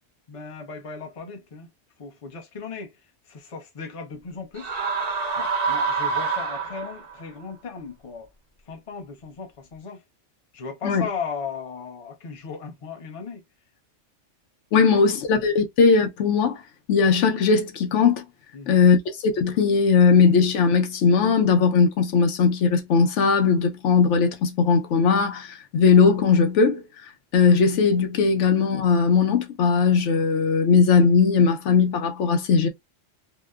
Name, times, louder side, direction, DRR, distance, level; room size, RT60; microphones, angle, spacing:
voice 1, 0.3-1.7 2.0-2.9 3.3-4.7 5.4-8.3 8.7-10.0 10.5-13.4 14.7-15.0 18.5-18.8, left 5 dB, 35° left, 0.6 m, -36 dB
sound 1, 4.6-7.2, right 5 dB, 45° right, 0.6 m, -26 dB
voice 2, 14.7-16.6 16.9-18.2 18.7-26.8 27.3-32.7, left 5 dB, 75° left, 0.9 m, -19 dB
2.8 x 2.1 x 2.2 m
omnidirectional pair, 1.3 m